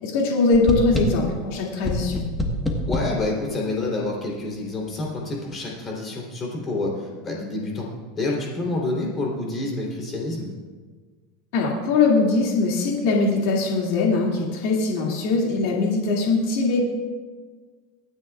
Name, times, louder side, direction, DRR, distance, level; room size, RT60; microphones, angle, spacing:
voice 1, 0.0-2.3 11.5-16.8, left 3 dB, 60° left, -2 dB, 2.4 m, -21 dB
sound 1, 0.5-1.4 1.8-3.2, left 1 dB, 5° left, 1.4 m, -26 dB
voice 2, 2.8-7.9 8.1-10.5, left 2 dB, 20° left, -2 dB, 3.4 m, -28 dB
24.5 x 9.6 x 2.4 m, 1.5 s
supercardioid pair, 155°, 0 cm